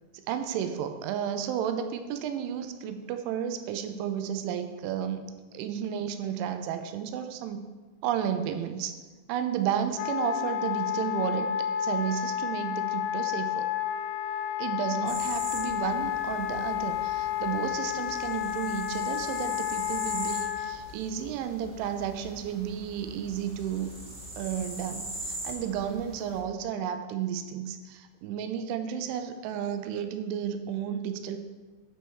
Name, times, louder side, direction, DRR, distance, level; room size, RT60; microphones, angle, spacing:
voice 1, 0.3-5.2 5.5-7.6 8.0-8.9 9.3-11.5 11.8-13.7 14.6-23.9 24.4-31.4, right 8 dB, 90° right, 8 dB, 3.1 m, -32 dB
Wind instrument woodwind instrument, 10.0-20.8, left 11 dB, 85° left, 2.9 m, -31 dB
sound 1, 15.1-26.4, right 1 dB, 55° right, 1.0 m, -42 dB
13.5 x 4.4 x 4.7 m, 1.3 s
omnidirectional pair, 5.4 m